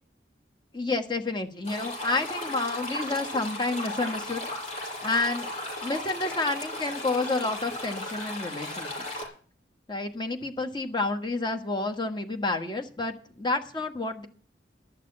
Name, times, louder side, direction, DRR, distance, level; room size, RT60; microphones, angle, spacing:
voice 1, 0.7-4.4 5.0-5.5 5.8-9.0 9.9-14.3, left 3 dB, 25° left, 4 dB, 1.3 m, -29 dB
sound 1, 1.6-9.2, left 1 dB, 40° left, 6.3 m, -35 dB
12.0 x 6.7 x 9.7 m, 0.43 s
head